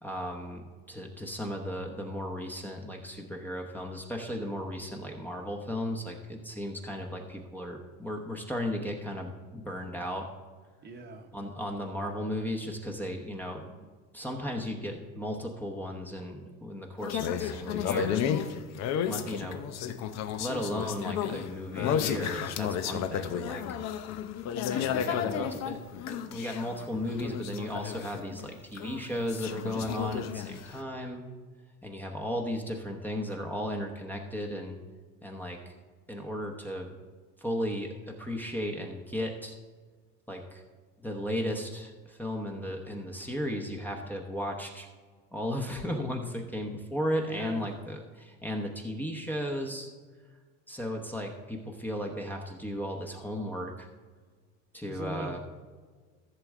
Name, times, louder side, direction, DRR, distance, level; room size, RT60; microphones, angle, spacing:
voice 1, 0.0-10.3 11.3-13.7 14.1-18.2 19.1-19.6 20.4-23.6 24.7-25.8 26.1-31.2 31.8-34.8 35.2-35.6 36.1-36.9 37.4-39.6 40.3-40.6 41.0-44.9 45.3-49.9 50.7-53.9 54.7-55.4, equal, 5° left, 1 dB, 0.9 m, -35 dB
voice 2, 10.8-11.3 19.8-20.2 47.3-47.8 54.8-55.4, right 2 dB, 30° right, 5 dB, 1.0 m, -41 dB
sound 1, 17.0-28.5 28.8-30.8, left 8 dB, 55° left, 0.7 m, -32 dB
14.5 x 6.8 x 3.6 m, 1.5 s
cardioid pair, 125°, 32 cm